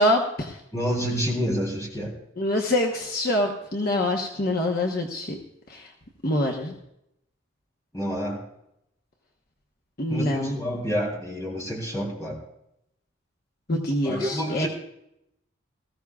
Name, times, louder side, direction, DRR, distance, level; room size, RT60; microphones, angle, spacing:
voice 1, 0.0-0.6 2.4-5.4 5.7-5.9 6.2-6.7 10.0-10.5 13.7-14.7, left 1 dB, 50° left, 0 dB, 1.1 m, -25 dB
voice 2, 0.7-2.2 7.9-8.4 10.1-12.4 14.0-14.7, equal, 15° left, -2 dB, 3.4 m, -28 dB
19.5 x 14.5 x 2.4 m, 0.80 s
head